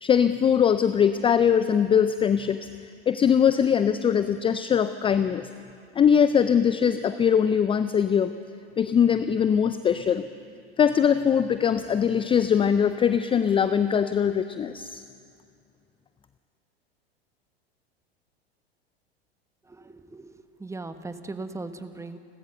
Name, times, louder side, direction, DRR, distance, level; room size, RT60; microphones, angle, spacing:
voice 1, 0.0-2.7 3.1-5.4 6.0-8.3 8.8-10.2 10.8-15.0, left 8 dB, 15° left, 12 dB, 0.5 m, -21 dB
voice 2, 19.6-22.2, right 3 dB, 10° right, 9 dB, 1.3 m, -38 dB
29.5 x 13.0 x 6.8 m, 2.4 s
hypercardioid pair, 90°, 31 cm